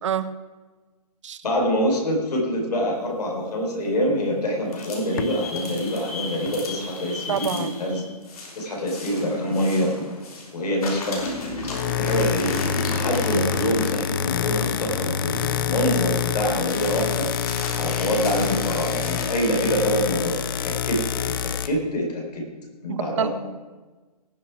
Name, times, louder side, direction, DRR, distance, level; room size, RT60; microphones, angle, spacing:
voice 1, 0.0-0.3 1.2-1.4 7.3-7.7 22.9-23.3, right 8 dB, 50° right, 14 dB, 0.6 m, -26 dB
voice 2, 1.4-8.1 8.6-9.9 10.5-11.2 12.0-17.3 17.7-20.4 20.6-21.0 21.4-22.4 22.8-23.3, equal, 85° left, -1 dB, 4.6 m, -25 dB
sound 1, 4.7-10.5 10.8-20.0, left 2 dB, 65° left, 3.6 m, -36 dB
sound 2, 5.2-5.4 11.5-21.7, left 8 dB, 35° left, 0.6 m, -27 dB
18.5 x 6.8 x 4.8 m, 1.3 s
hypercardioid pair, 160°, 20 cm